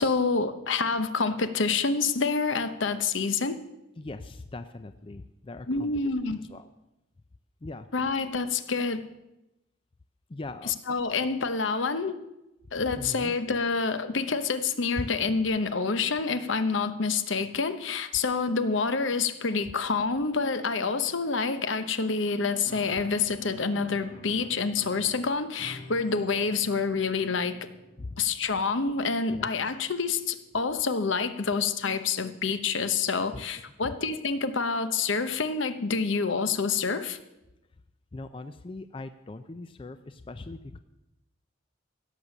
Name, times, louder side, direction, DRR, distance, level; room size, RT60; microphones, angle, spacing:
voice 1, 0.0-3.6 5.7-6.4 7.9-9.0 10.7-12.2 12.7-27.7 28.2-37.2, left 4 dB, 70° left, 10 dB, 0.9 m, -27 dB
voice 2, 4.0-5.9 6.5-6.7 7.6-8.1 10.3-11.0 12.9-13.4 15.0-15.1 28.0-28.2 29.3-29.5 33.3-33.5 38.1-40.8, left 2 dB, 25° left, 10 dB, 0.4 m, -40 dB
Piano, 22.6-31.1, left 1 dB, 45° left, 1.7 m, -51 dB
16.0 x 6.6 x 7.2 m, 0.92 s
head